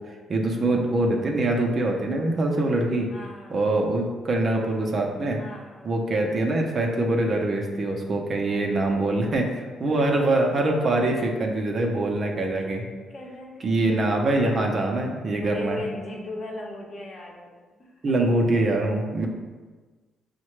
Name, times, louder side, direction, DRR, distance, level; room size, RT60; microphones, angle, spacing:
voice 1, 0.3-3.1 3.5-5.4 5.8-12.8 13.6-15.8 18.0-19.3, right 2 dB, 45° right, 1 dB, 0.6 m, -24 dB
voice 2, 3.1-3.6 5.4-5.9 8.4-8.6 9.7-10.1 12.6-12.7 13.1-14.1 15.3-18.2, left 2 dB, 45° left, -1 dB, 0.8 m, -39 dB
5.4 x 2.1 x 3.1 m, 1.4 s
cardioid pair, 90°, 0 cm